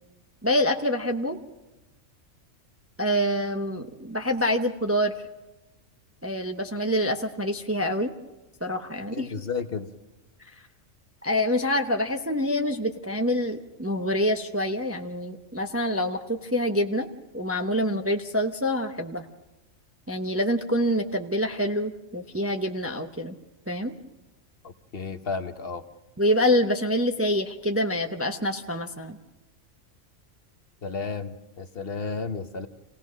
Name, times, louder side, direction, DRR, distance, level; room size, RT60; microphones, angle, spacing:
voice 1, 0.4-1.4 3.0-5.1 6.2-8.1 8.6-9.3 11.2-17.1 17.3-19.3 20.1-23.4 23.7-23.9 26.2-29.2, equal, 15° right, 5 dB, 0.7 m, -26 dB
voice 2, 9.1-9.9 24.6-25.8 30.8-32.7, left 4 dB, 50° left, 8 dB, 1.1 m, -33 dB
27.0 x 17.0 x 6.4 m, 1.1 s
omnidirectional pair, 1.3 m